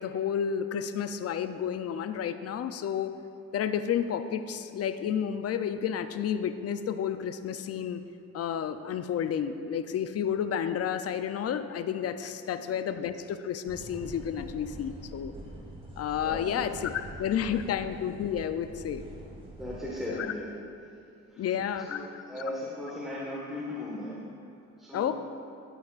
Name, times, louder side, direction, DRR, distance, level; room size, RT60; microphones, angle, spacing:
voice 1, 0.0-3.1 3.5-8.0 8.3-15.3 16.0-19.0 20.1-20.3 21.4-22.0 24.9-25.1, left 8 dB, 55° left, 10 dB, 0.5 m, -31 dB
Prague Tram, 13.7-20.1, right 1 dB, 20° right, 1.8 m, -45 dB
voice 2, 16.2-16.7 17.4-17.6 19.5-20.5 21.3-21.4 21.8-24.2 24.8-25.1, left 1 dB, ahead, -7 dB, 1.5 m, -38 dB
13.0 x 8.1 x 2.5 m, 2.6 s
cardioid pair, 90°, 30 cm